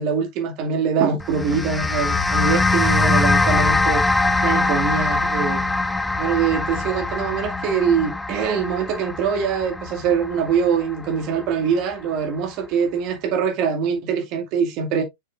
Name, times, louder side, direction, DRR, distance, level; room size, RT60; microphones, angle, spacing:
voice 1, 0.0-4.1 4.4-5.6 6.2-15.0, right 6 dB, 40° right, 2.2 m, -23 dB
sound 1, 1.2-11.7, left 2 dB, 5° left, 0.8 m, -22 dB
6.8 x 6.6 x 2.5 m
figure-of-eight pair, 100°, 0 cm